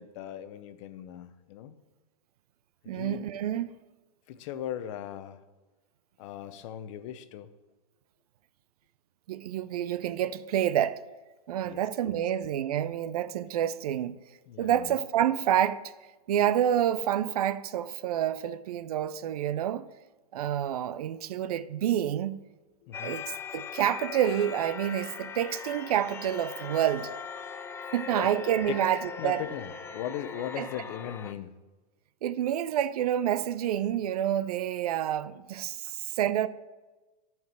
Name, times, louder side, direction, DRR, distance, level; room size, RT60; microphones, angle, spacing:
voice 1, 0.0-1.7 2.8-3.2 4.3-5.4 6.2-7.5 11.6-12.2 14.5-15.0 22.8-23.2 28.1-28.3 28.7-28.8 29.2-31.5, left 10 dB, 50° left, 0.8 m, -38 dB
voice 2, 2.9-3.7 9.3-11.0 11.5-14.2 14.6-15.8 16.3-19.9 20.3-22.4 23.0-23.2 23.5-27.1 27.9-29.4 30.6-30.7 32.2-36.5, right 10 dB, 70° right, 0.6 m, -28 dB
sound 1, 22.9-31.3, left 6 dB, 10° left, 0.4 m, -40 dB
10.5 x 4.6 x 7.4 m
hypercardioid pair, 125°, 20 cm